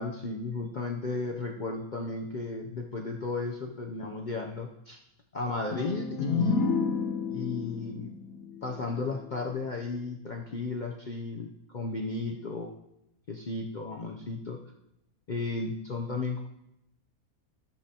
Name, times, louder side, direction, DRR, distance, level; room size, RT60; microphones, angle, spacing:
voice 1, 0.0-5.0 5.3-6.7 7.3-8.1 8.6-12.7 13.3-14.6 15.3-16.4, left 3 dB, 55° left, 1 dB, 0.5 m, -34 dB
sound 1, 5.7-9.4, left 5 dB, 75° left, 1.2 m, -31 dB
13.5 x 7.5 x 2.8 m, 0.85 s
omnidirectional pair, 1.6 m